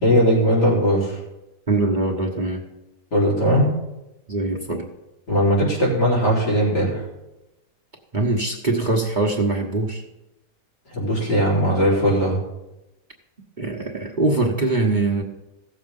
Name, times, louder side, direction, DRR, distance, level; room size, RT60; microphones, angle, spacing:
voice 1, 0.0-1.2 3.1-3.7 5.3-7.0 10.9-12.4, equal, 80° left, -4 dB, 4.6 m, -19 dB
voice 2, 1.7-2.6 4.3-4.9 8.1-10.0 13.6-15.2, right 2 dB, 30° right, -1 dB, 1.2 m, -22 dB
16.0 x 7.3 x 5.3 m, 0.96 s
omnidirectional pair, 1.8 m